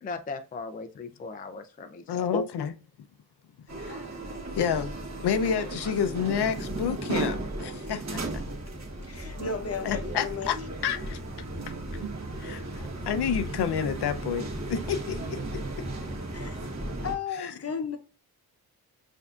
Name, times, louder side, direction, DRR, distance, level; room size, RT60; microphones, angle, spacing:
voice 1, 0.0-2.4, left 3 dB, 25° left, 0.3 m, -36 dB
voice 2, 2.1-2.7 3.8-4.0 4.5-4.9 5.2-8.2 9.8-10.6 10.8-11.2 12.4-12.6 13.1-15.6 17.4-17.5, left 7 dB, 85° left, 0.6 m, -29 dB
sound 1, 3.7-17.2, right 2 dB, 45° right, 1.4 m, -35 dB
voice 3, 9.0-10.5 16.3-16.6 17.0-18.0, left 5 dB, 40° left, 0.8 m, -34 dB
Guitar, 11.5-16.7, right 9 dB, 75° right, 0.8 m, -46 dB
7.0 x 2.7 x 2.3 m
wide cardioid pair, 155°, 38 cm